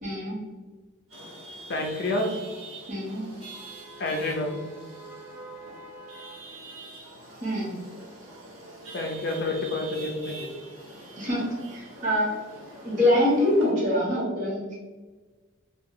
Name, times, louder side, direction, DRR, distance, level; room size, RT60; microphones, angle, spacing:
voice 1, 0.0-0.5 2.9-3.3 7.4-7.8 11.2-12.3 12.8-14.8, left 1 dB, 40° right, -6 dB, 1.2 m, -25 dB
Chatter / Vehicle horn car horn honking / Traffic noise roadway noise, 1.1-13.7, right 2 dB, 90° right, 1.1 m, -44 dB
voice 2, 1.7-2.3 4.0-4.6 8.9-10.6, left 2 dB, 50° left, 1 dB, 0.5 m, -29 dB
2.9 x 2.3 x 3.6 m, 1.3 s
head